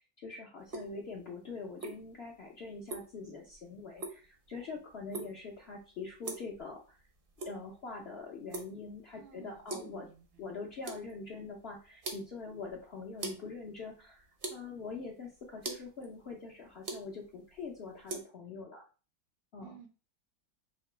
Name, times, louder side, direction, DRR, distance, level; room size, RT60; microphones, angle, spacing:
voice 1, 0.2-7.0 7.4-10.1 10.4-18.8 19.5-19.8, left 4 dB, 75° left, -1 dB, 0.5 m, -44 dB
sound 1, 0.6-18.2, right 3 dB, 55° right, 0.5 m, -46 dB
voice 2, 9.1-10.6 19.6-19.9, right 9 dB, 85° right, 2 dB, 1.5 m, -54 dB
4.0 x 2.9 x 4.4 m, 0.35 s
omnidirectional pair, 2.1 m